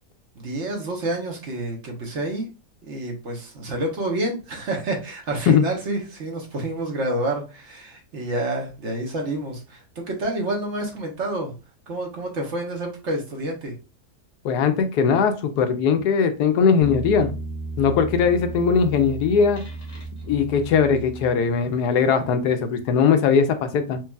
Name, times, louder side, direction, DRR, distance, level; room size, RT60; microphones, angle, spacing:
voice 1, 0.4-2.5 2.8-11.5 11.9-13.7, right 1 dB, 50° right, 1 dB, 1.1 m, -28 dB
voice 2, 14.4-17.3 17.8-19.6 20.3-24.0, left 6 dB, 80° left, 8 dB, 1.1 m, -20 dB
sound 1, 16.8-21.7, right 2 dB, 25° left, 0.8 m, -34 dB
4.6 x 2.8 x 2.3 m, 0.31 s
omnidirectional pair, 1.7 m